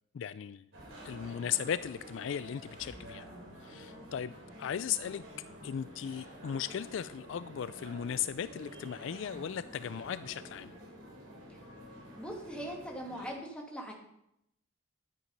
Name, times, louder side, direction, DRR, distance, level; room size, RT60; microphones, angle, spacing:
voice 1, 0.1-0.7 1.0-3.2 3.6-4.3 4.6-5.2 5.6-10.7, left 9 dB, 65° left, 15 dB, 0.3 m, -37 dB
sound 1, 0.7-13.3, equal, 70° right, 3.9 m, -49 dB
voice 2, 12.2-13.9, equal, 5° left, 0 dB, 2.1 m, -41 dB
11.5 x 9.8 x 5.3 m, 0.78 s
head